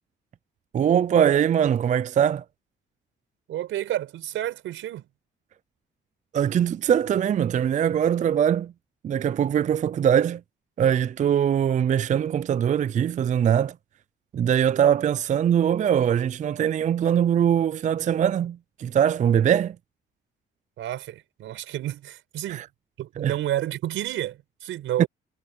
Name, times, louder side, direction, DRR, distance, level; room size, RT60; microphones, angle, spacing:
voice 1, 0.7-2.4 6.3-8.7 9.0-10.4 10.8-13.7 14.3-19.8 22.5-22.7 23.2-23.4 25.0-25.1, right 9 dB, 40° right, 0.4 m, -22 dB
voice 2, 3.5-5.0 20.8-22.6 23.0-25.1, right 13 dB, 85° right, 4.9 m, -30 dB
cardioid pair, 90°, 20 cm